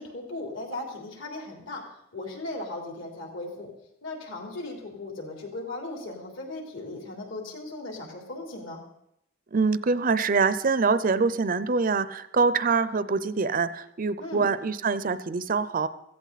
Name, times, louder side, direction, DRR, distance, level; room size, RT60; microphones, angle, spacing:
voice 1, 0.0-1.8 2.1-3.7 4.0-8.8 14.2-14.5, left 2 dB, 65° left, 1 dB, 3.7 m, -37 dB
voice 2, 9.5-15.9, right 4 dB, 40° right, 14 dB, 0.5 m, -24 dB
16.5 x 15.0 x 4.1 m, 0.78 s
head